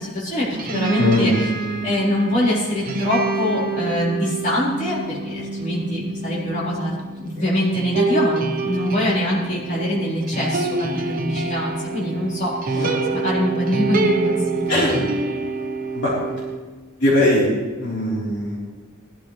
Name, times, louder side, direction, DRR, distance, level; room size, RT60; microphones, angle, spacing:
voice 1, 0.0-1.3 1.8-6.9 7.2-14.8, left 1 dB, 35° left, -8 dB, 4.2 m, -24 dB
sound 1, 0.5-16.6, right 3 dB, 40° right, 1.0 m, -27 dB
voice 2, 1.0-1.3 7.3-7.4 12.7-13.0 14.7-15.1 15.9-16.1 17.0-17.5 17.8-18.6, left 1 dB, 55° left, -7 dB, 4.0 m, -20 dB
21.0 x 12.0 x 3.3 m, 1.4 s
head